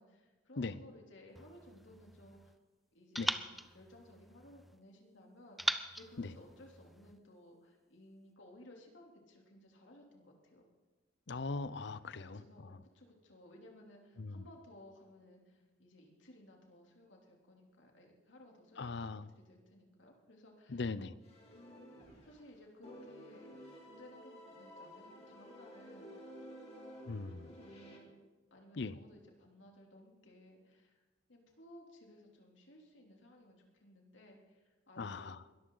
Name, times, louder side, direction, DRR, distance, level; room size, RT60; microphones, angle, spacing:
voice 1, 0.0-2.5 2.9-3.5 3.7-10.7 12.0-20.8 21.5-21.9 22.2-26.8 27.4-28.2 28.5-31.0 31.3-35.4, left 1 dB, 80° left, 0 dB, 3.2 m, -58 dB
sound 1, 1.3-2.6 3.1-4.8 5.6-7.2, equal, ahead, 0.6 m, -41 dB
voice 2, 11.3-12.4 14.2-14.4 18.8-19.3 20.7-21.2 27.1-27.5 28.8-29.0 35.0-35.4, left 3 dB, 65° left, 16 dB, 0.7 m, -39 dB
sound 2, 21.2-22.5 22.8-28.0, equal, 35° left, 3.2 m, -53 dB
21.5 x 14.0 x 4.0 m, 1.3 s
head